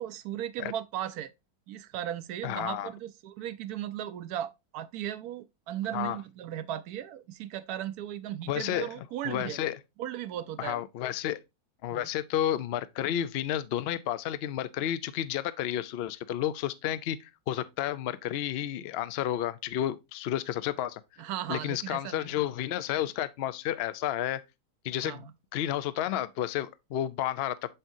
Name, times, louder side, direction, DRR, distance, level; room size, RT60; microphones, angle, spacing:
voice 1, 0.0-1.3 1.7-9.6 10.0-10.8 11.9-12.1 21.2-22.3 24.9-25.3, right 11 dB, 80° right, 1.1 m, -36 dB
voice 2, 2.4-2.9 5.9-6.2 8.5-8.9 9.2-9.8 10.6-11.4 11.8-21.0 21.5-24.4 24.8-25.2 25.5-27.7, left 11 dB, 65° left, 0.6 m, -31 dB
7.2 x 5.5 x 2.6 m
omnidirectional pair, 1.6 m